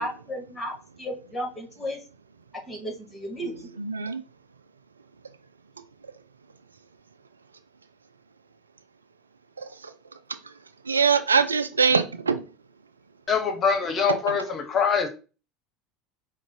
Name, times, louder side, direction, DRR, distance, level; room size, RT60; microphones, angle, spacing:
voice 1, 0.0-2.0 2.7-3.7, equal, 10° left, 1.9 m, -34 dB
voice 2, 3.8-4.2 10.9-12.4, right 5 dB, 85° right, 0.3 m, -22 dB
voice 3, 13.3-15.1, left 6 dB, 35° left, 0.9 m, -24 dB
4.9 x 2.4 x 3.8 m
figure-of-eight pair, 75°, 0 cm